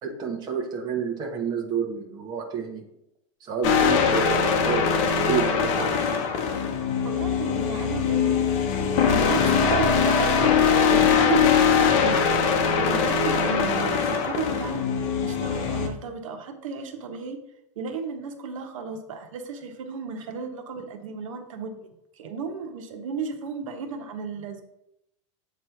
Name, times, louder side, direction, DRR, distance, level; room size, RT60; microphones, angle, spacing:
voice 1, 0.0-2.8 3.4-5.9, right 6 dB, 25° right, 1 dB, 1.1 m, -29 dB
sound 1, 3.6-15.9, left 6 dB, 40° left, 1.0 m, -22 dB
voice 2, 7.0-8.5 8.9-10.5 10.9-14.8 15.2-17.4 17.8-24.6, right 5 dB, 90° right, 5 dB, 1.0 m, -33 dB
7.8 x 3.2 x 5.7 m, 0.80 s
supercardioid pair, 155°, 16 cm